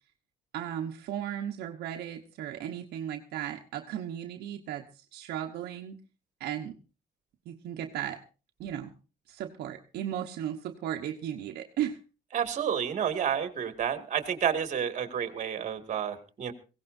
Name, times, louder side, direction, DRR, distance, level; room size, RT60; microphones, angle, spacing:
voice 1, 0.5-6.0 6.4-6.8 7.5-8.2 8.6-8.9 9.3-12.0, right 10 dB, 75° right, 3 dB, 1.1 m, -36 dB
voice 2, 12.3-16.5, right 8 dB, 45° right, 7 dB, 2.3 m, -30 dB
22.5 x 17.0 x 2.7 m, 0.33 s
cardioid pair, 110°, 17 cm